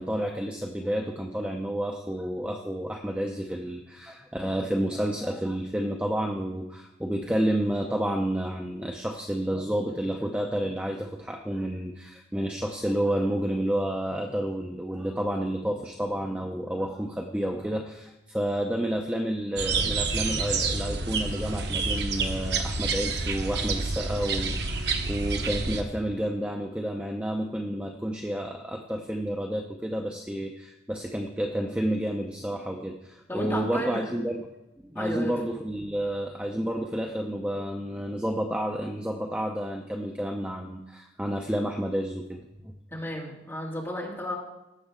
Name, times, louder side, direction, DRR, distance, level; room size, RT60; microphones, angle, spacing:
voice 1, 0.0-34.5 34.8-42.7, right 1 dB, 5° right, 2 dB, 0.7 m, -30 dB
sound 1, 19.6-25.8, right 3 dB, 65° right, 1.1 m, -28 dB
voice 2, 33.3-34.1 34.9-35.3 42.9-44.3, left 1 dB, 15° left, -3 dB, 2.6 m, -33 dB
18.5 x 7.6 x 3.7 m, 0.98 s
head